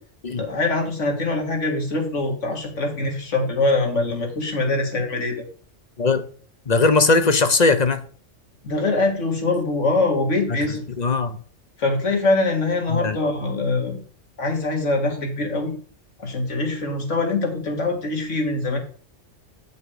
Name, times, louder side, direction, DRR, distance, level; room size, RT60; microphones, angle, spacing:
voice 1, 0.4-5.4 8.6-10.8 11.8-14.0 14.4-15.7 16.2-18.8, left 2 dB, 90° left, 3 dB, 2.2 m, -23 dB
voice 2, 6.7-8.0 10.5-10.6 11.0-11.4 12.9-13.2, left 3 dB, 40° left, 10 dB, 0.7 m, -19 dB
9.0 x 5.5 x 4.8 m, 0.43 s
omnidirectional pair, 1.2 m